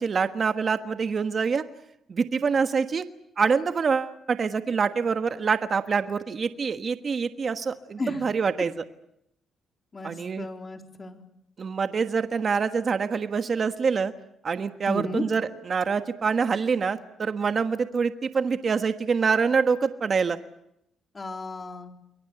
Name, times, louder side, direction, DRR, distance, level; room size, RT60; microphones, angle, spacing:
voice 1, 0.0-1.6 2.1-3.0 3.4-8.8 10.0-10.5 11.6-14.1 14.4-20.4, right 5 dB, 45° right, 9 dB, 1.4 m, -25 dB
voice 2, 9.9-11.2 14.9-15.2 21.1-21.9, left 2 dB, 30° left, 5 dB, 3.8 m, -34 dB
29.0 x 22.5 x 6.9 m, 0.80 s
cardioid pair, 90°, 0 cm